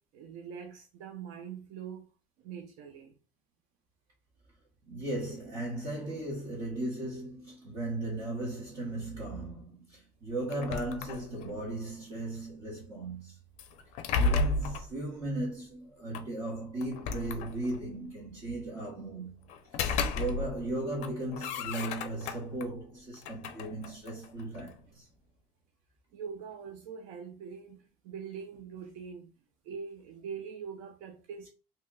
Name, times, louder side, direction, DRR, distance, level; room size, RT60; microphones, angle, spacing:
voice 1, 0.0-2.1 2.4-3.1 26.1-29.3 29.6-31.5, right 6 dB, 70° right, 0.5 m, -43 dB
voice 2, 4.9-13.4 14.2-19.3 19.9-25.1, right 1 dB, 35° right, 1.0 m, -37 dB
sound 1, 10.5-11.6 13.6-14.9 16.1-16.2 16.8-17.9 19.5-20.7 21.0-22.7 23.1-24.8, left 3 dB, 55° left, 0.5 m, -33 dB
2.8 x 2.1 x 3.6 m
cardioid pair, 155°, 14 cm